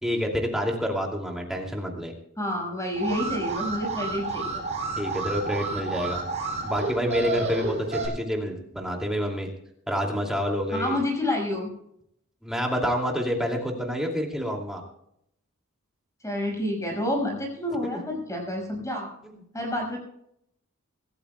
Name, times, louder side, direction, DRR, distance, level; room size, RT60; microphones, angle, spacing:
voice 1, 0.0-2.1 5.0-6.2 6.6-9.5 9.9-11.0 12.4-14.8 17.8-18.0 19.2-19.3, equal, ahead, 0 dB, 2.6 m, -28 dB
voice 2, 2.4-4.6 10.7-11.7 16.2-19.1 19.5-20.0, left 1 dB, 15° left, 1 dB, 5.5 m, -29 dB
Alarm, 2.9-8.1, right 3 dB, 30° right, 6.0 m, -31 dB
24.5 x 14.0 x 2.3 m, 0.74 s
head